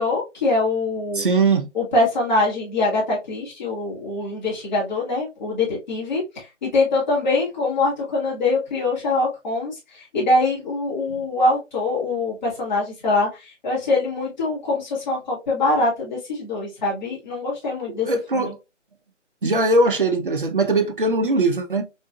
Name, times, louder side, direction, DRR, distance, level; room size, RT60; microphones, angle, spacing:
voice 1, 0.0-1.2 1.7-18.1 18.3-18.5, left 2 dB, 35° left, 1.8 m, -23 dB
voice 2, 1.1-1.7 17.9-18.5 19.4-21.8, right 2 dB, 45° right, 0.4 m, -20 dB
3.7 x 2.7 x 2.3 m
figure-of-eight pair, 170°, 37 cm